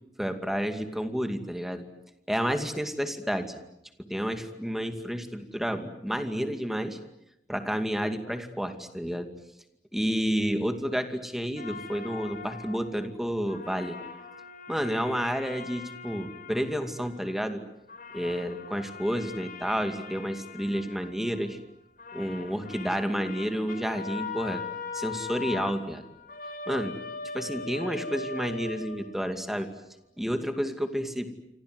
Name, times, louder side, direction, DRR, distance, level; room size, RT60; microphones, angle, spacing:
voice 1, 0.2-1.8 2.3-3.6 4.1-7.0 7.5-9.3 9.9-14.0 14.7-17.6 18.1-21.6 22.1-24.6 24.9-26.1 26.7-26.9 27.3-29.7 30.2-31.3, equal, ahead, 6 dB, 2.4 m, -30 dB
sound 1, 11.6-13.2 13.5-17.6 17.9-21.7 22.0-29.5, left 4 dB, 50° left, 4.2 m, -41 dB
28.0 x 25.5 x 8.0 m, 0.84 s
head